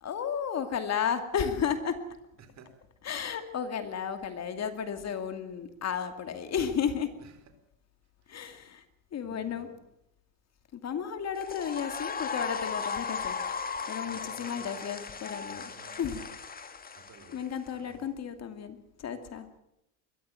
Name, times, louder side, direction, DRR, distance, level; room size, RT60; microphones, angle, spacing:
voice 1, 0.0-2.1 3.0-7.1 8.3-8.8 9.1-9.7 10.7-13.4 13.9-15.6 16.0-16.2 17.3-19.5, left 7 dB, 35° left, 8 dB, 2.5 m, -33 dB
voice 2, 2.4-2.8 7.2-7.4 8.2-8.4 9.2-9.8 14.0-14.8 15.5-16.0 16.9-18.1, right 5 dB, 40° right, 9 dB, 4.4 m, -54 dB
sound 1, 11.3-17.7, left 5 dB, 20° left, 1.9 m, -37 dB
22.0 x 14.5 x 9.1 m, 0.82 s
supercardioid pair, 115°, 42 cm